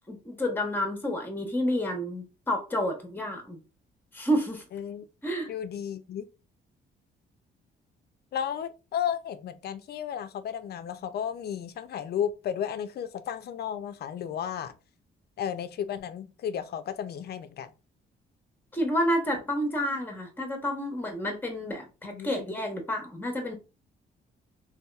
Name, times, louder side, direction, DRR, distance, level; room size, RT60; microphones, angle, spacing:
voice 1, 0.1-3.6 4.1-4.6 5.2-5.5 18.7-23.6, equal, 10° left, 0.8 m, -29 dB
voice 2, 4.7-5.0 5.5-6.3 8.3-14.8 15.4-17.7 22.1-22.5, left 9 dB, 55° left, 0.4 m, -33 dB
2.8 x 2.2 x 2.2 m
cardioid pair, 90°, 20 cm